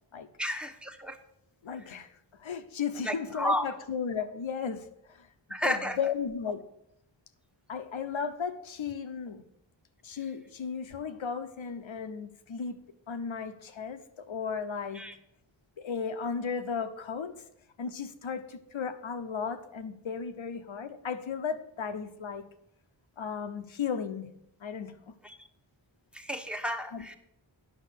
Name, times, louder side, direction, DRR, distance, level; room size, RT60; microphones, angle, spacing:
voice 1, 0.4-1.2 3.0-3.7 5.5-6.0 14.9-15.2 25.2-25.4 26.1-27.2, equal, ahead, 5 dB, 1.0 m, -32 dB
voice 2, 1.6-2.1 2.4-5.3 5.6-6.6 7.7-9.4 10.0-15.0 15.8-17.3 17.8-22.4 23.2-24.3 24.6-25.1 26.9-27.2, left 6 dB, 85° left, 10 dB, 1.0 m, -35 dB
10.5 x 6.3 x 6.5 m, 0.78 s
wide cardioid pair, 95°, 46 cm